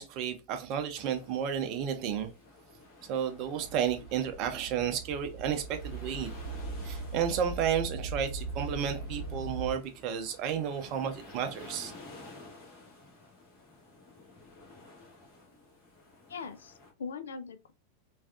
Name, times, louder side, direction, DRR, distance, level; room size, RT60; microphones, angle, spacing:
voice 1, 0.0-2.3 3.1-6.3 6.8-11.9, right 8 dB, 40° right, 0.5 m, -32 dB
sound 1, 0.9-16.9, left 2 dB, 40° left, 1.3 m, -53 dB
sound 2, 3.5-9.7, right 3 dB, 80° right, 0.6 m, -40 dB
voice 2, 16.3-17.7, left 5 dB, 65° left, 0.4 m, -41 dB
3.4 x 2.4 x 2.3 m
figure-of-eight pair, 90°, 0 cm